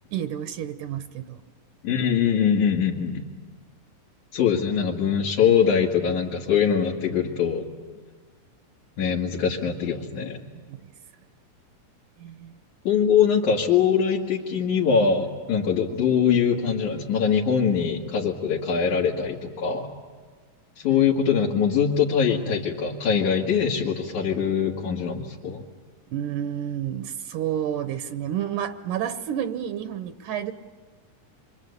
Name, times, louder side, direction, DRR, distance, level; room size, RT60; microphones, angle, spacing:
voice 1, 0.1-1.4 10.7-10.8 12.2-12.6 26.1-30.5, right 10 dB, 75° right, 9 dB, 2.4 m, -30 dB
voice 2, 1.8-3.2 4.3-7.7 9.0-10.4 12.9-19.9 20.8-25.6, left 7 dB, 65° left, -4 dB, 3.3 m, -22 dB
27.0 x 25.0 x 8.3 m, 1.5 s
omnidirectional pair, 3.8 m